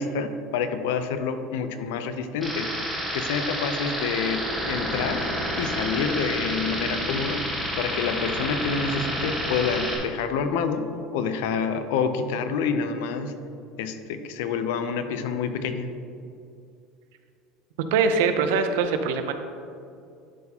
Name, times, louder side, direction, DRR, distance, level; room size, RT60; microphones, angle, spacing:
voice 1, 0.0-2.7 3.1-5.3 5.6-10.9 11.1-13.3 13.8-15.9, left 5 dB, 80° left, 9 dB, 0.5 m, -28 dB
sound 1, 2.4-10.0, equal, 10° left, 1.4 m, -29 dB
voice 2, 17.9-19.3, right 5 dB, 90° right, 8 dB, 0.6 m, -22 dB
10.5 x 4.3 x 2.8 m, 2.5 s
cardioid pair, 170°, 0 cm